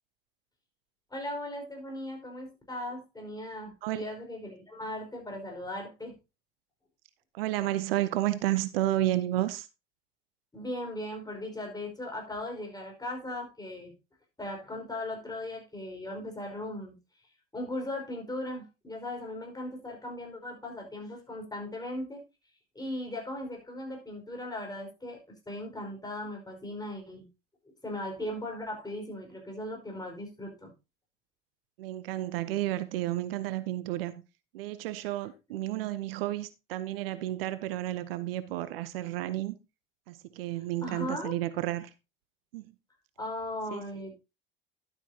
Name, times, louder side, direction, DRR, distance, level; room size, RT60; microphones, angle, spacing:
voice 1, 1.1-6.2 10.5-13.9 14.4-17.0 17.5-22.2 22.7-25.2 25.5-27.3 27.8-30.7 40.8-41.4 43.2-44.2, left 1 dB, 15° left, 4.8 m, -38 dB
voice 2, 7.3-9.7 31.8-34.1 34.5-39.6 40.1-41.9 42.5-42.7 43.7-44.0, right 15 dB, 75° right, 0.8 m, -31 dB
11.5 x 8.2 x 2.8 m
hypercardioid pair, 70°, 29 cm